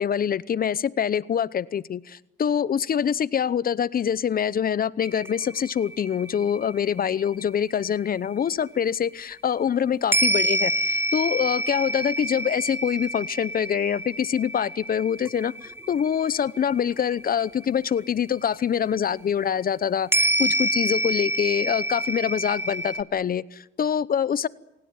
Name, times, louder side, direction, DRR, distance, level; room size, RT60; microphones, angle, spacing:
voice 1, 0.0-24.5, left 8 dB, 50° left, 20 dB, 0.8 m, -25 dB
sound 1, 5.0-8.6 10.1-18.3 18.6-18.7 20.1-23.0, right 1 dB, 10° right, 1.2 m, -28 dB
27.5 x 18.0 x 9.5 m, 0.95 s
cardioid pair, 90°, 20 cm